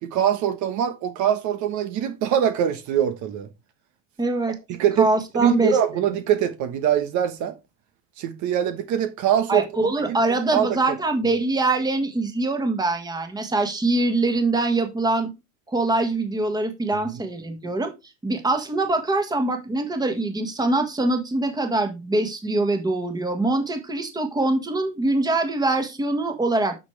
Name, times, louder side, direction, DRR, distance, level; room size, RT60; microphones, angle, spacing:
voice 1, 0.0-3.5 4.7-5.1 5.3-7.5 8.2-10.2 10.5-11.0, right 10 dB, 50° right, 1.3 m, -23 dB
voice 2, 4.2-4.5 5.0-5.8 9.5-15.3 15.7-17.9 18.2-26.8, right 2 dB, 10° right, 1.7 m, -23 dB
9.5 x 6.4 x 3.3 m
supercardioid pair, 130°, 37 cm